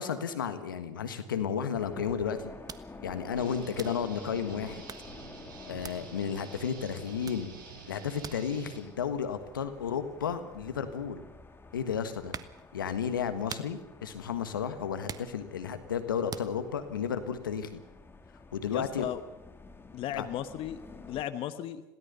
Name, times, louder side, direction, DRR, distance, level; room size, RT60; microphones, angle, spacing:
voice 1, 0.0-2.5 3.0-4.8 5.7-7.5 7.9-11.2 11.7-12.3 12.7-17.8 18.5-19.1 20.1-20.3, left 7 dB, 90° left, 10 dB, 1.4 m, -33 dB
sound 1, 1.7-21.2, left 3 dB, 20° left, 2.4 m, -50 dB
sound 2, 2.7-3.4 3.7-4.3 4.7-5.2 5.8-6.4 6.8-7.0 7.2-11.4 11.9-12.7 13.1-15.8 16.3-16.6, right 7 dB, 35° right, 1.3 m, -45 dB
Guitar, 3.4-8.8, right 6 dB, 80° right, 6.2 m, -49 dB
voice 2, 18.7-19.2 19.9-21.8, left 11 dB, 55° left, 11 dB, 1.2 m, -36 dB
22.0 x 17.5 x 6.9 m, 1.0 s
hypercardioid pair, 65°, 11 cm